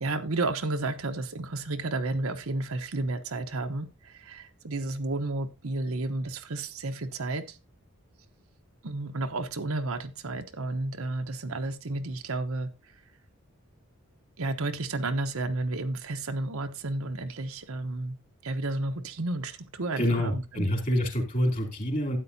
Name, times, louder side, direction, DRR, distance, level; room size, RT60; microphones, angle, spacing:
voice 1, 0.0-7.6 8.8-12.7 14.4-18.2 18.4-20.7, right 2 dB, 75° right, 1.0 m, -32 dB
voice 2, 20.0-22.2, equal, 40° left, 2.8 m, -27 dB
12.5 x 8.8 x 2.7 m
head